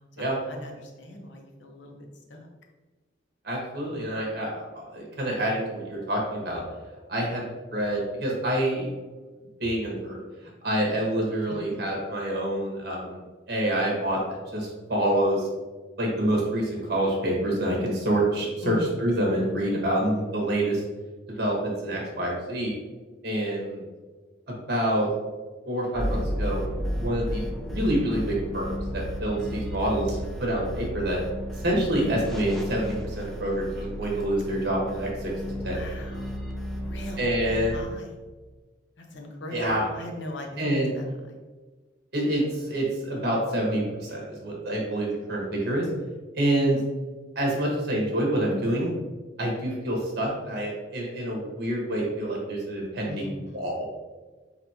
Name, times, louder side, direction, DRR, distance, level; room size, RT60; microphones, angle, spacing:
voice 1, 0.0-2.0 2.3-2.5 18.6-19.0 35.4-36.4 36.8-38.2 39.0-41.4 53.1-53.6, left 1 dB, 80° left, 2 dB, 0.8 m, -39 dB
voice 2, 3.4-6.6 7.1-7.4 7.7-8.9 9.6-10.2 10.6-13.2 13.5-15.5 16.0-20.8 21.3-22.7 23.2-23.8 24.7-25.1 25.7-26.6 27.0-31.2 31.6-35.3 35.6-35.8 37.2-37.8 39.5-39.8 40.6-40.9 42.1-45.8 46.4-46.8 47.3-48.9 49.4-53.8, right 1 dB, 60° right, -2 dB, 1.4 m, -27 dB
sound 1, 25.9-37.8, equal, ahead, 0.5 m, -33 dB
4.1 x 3.9 x 2.9 m, 1.3 s
head